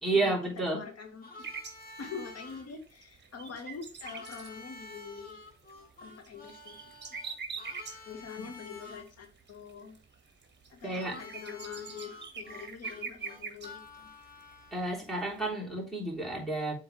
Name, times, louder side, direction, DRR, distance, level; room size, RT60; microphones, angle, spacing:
voice 1, 0.0-0.8 8.4-8.5 10.8-11.2 14.7-16.7, right 2 dB, ahead, 3.3 m, -31 dB
voice 2, 0.7-1.6 2.0-5.4 6.0-7.2 8.1-10.0 10.7-14.1, left 6 dB, 55° left, 1.8 m, -44 dB
Harmonica, 1.2-2.6 4.0-9.0 11.0-14.9, left 2 dB, 30° left, 2.4 m, -50 dB
sound 1, 1.4-15.5, right 5 dB, 35° right, 1.5 m, -44 dB
7.7 x 3.9 x 3.3 m
cardioid pair, 90°, 30 cm